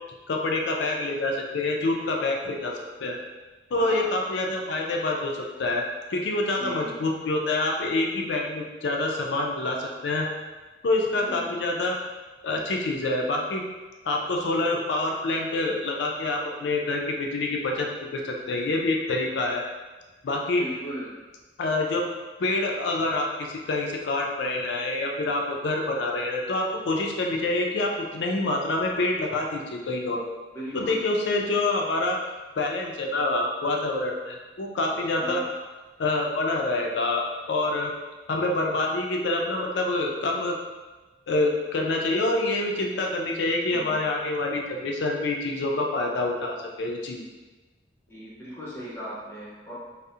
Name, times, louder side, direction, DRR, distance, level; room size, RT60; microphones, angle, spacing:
voice 1, 0.3-3.2 3.7-5.8 6.1-10.3 10.8-12.0 12.4-13.6 14.0-19.6 20.2-20.6 21.6-22.0 22.4-30.2 30.7-32.2 32.6-35.4 36.0-37.9 38.3-40.6 41.3-47.2, left 2 dB, 75° left, 1 dB, 0.4 m, -26 dB
voice 2, 3.8-4.1 6.6-6.9 11.1-11.5 20.6-21.1 30.5-31.0 35.2-35.5 43.7-43.9 48.1-49.7, equal, 15° left, -8 dB, 0.5 m, -37 dB
2.4 x 2.0 x 2.7 m, 1.3 s
head